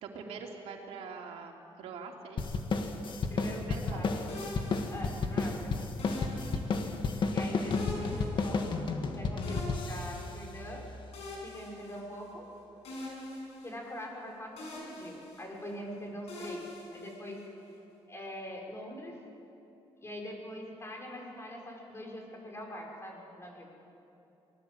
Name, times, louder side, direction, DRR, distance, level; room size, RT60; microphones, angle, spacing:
voice 1, 0.0-2.6 3.6-4.3 5.4-5.8 6.4-6.5 7.7-7.8 17.8-17.9, right 5 dB, 85° right, 1 dB, 3.0 m, -45 dB
sound 1, 2.4-11.2, left 4 dB, 50° left, 2.0 m, -33 dB
voice 2, 3.3-4.3 4.9-6.0 7.3-8.8 9.1-10.8 11.4-12.5 12.7-13.0 13.6-16.6 16.9-17.4 18.1-19.2 20.0-23.7, equal, 25° left, 0 dB, 6.0 m, -43 dB
sound 2, 4.3-5.4 6.0-7.1 7.7-9.1 9.4-10.6 11.1-12.5 12.8-14.2 14.6-15.8 16.3-17.6, left 2 dB, 85° left, 6.8 m, -44 dB
24.5 x 19.0 x 7.9 m, 2.9 s
cardioid pair, 90°, 10 cm